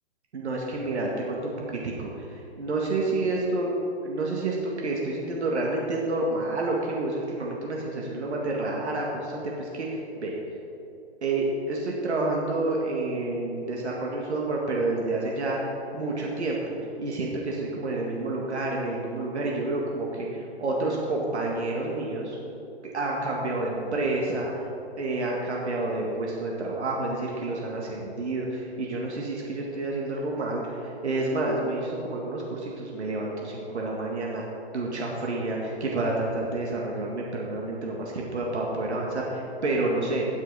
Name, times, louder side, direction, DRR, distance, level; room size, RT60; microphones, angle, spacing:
voice 1, 0.3-3.7 4.0-10.3 11.2-22.4 22.9-24.5 25.0-34.5 34.7-40.3, right 2 dB, 90° right, -2 dB, 1.8 m, -29 dB
16.5 x 6.2 x 4.1 m, 2.8 s
hypercardioid pair, 150°, 33 cm